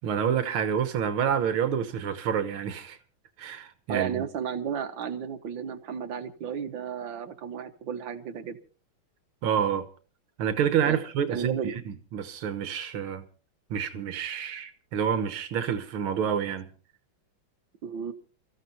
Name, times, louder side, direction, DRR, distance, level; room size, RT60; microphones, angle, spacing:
voice 1, 0.0-3.0 3.4-4.3 9.4-9.9 10.4-13.2 13.7-16.7, right 8 dB, 90° right, 2.0 m, -28 dB
voice 2, 3.9-8.6 10.8-11.0 11.3-11.7 17.8-18.1, right 8 dB, 65° right, 2.0 m, -33 dB
29.5 x 14.5 x 2.7 m
omnidirectional pair, 2.3 m